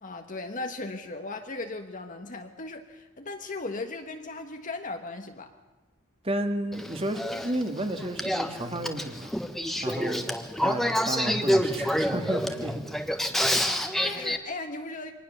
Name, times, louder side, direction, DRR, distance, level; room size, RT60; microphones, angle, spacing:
voice 1, 0.0-5.5 13.7-15.1, left 3 dB, 35° left, 5 dB, 1.3 m, -37 dB
voice 2, 6.2-9.3 9.8-10.2 10.6-12.9, right 1 dB, 25° right, 7 dB, 2.0 m, -32 dB
Male speech man speaking / Female speech woman speaking / Conversation, 6.7-14.4, equal, ahead, 1.3 m, -28 dB
24.5 x 19.5 x 7.0 m, 1.2 s
head